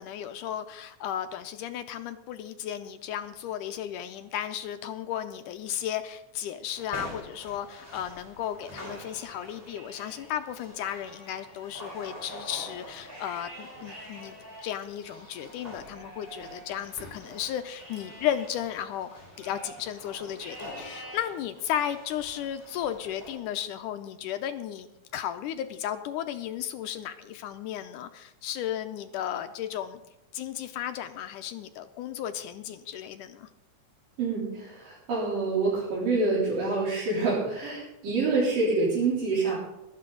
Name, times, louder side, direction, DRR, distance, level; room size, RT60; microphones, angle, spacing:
voice 1, 0.0-14.4 14.6-24.9 25.1-30.0 30.3-33.5, left 10 dB, 80° left, 9 dB, 2.1 m, -34 dB
sound 1, 6.7-23.4, equal, 5° right, 4.4 m, -47 dB
Livestock farm animals working animals, 8.7-10.3 10.7-17.3 17.8-19.9 20.4-21.3 21.8-22.3 22.8-23.9, right 1 dB, 35° right, 7.2 m, -48 dB
voice 2, 34.2-39.6, right 3 dB, 75° right, -7 dB, 5.3 m, -26 dB
17.5 x 13.0 x 3.9 m, 0.92 s
omnidirectional pair, 3.9 m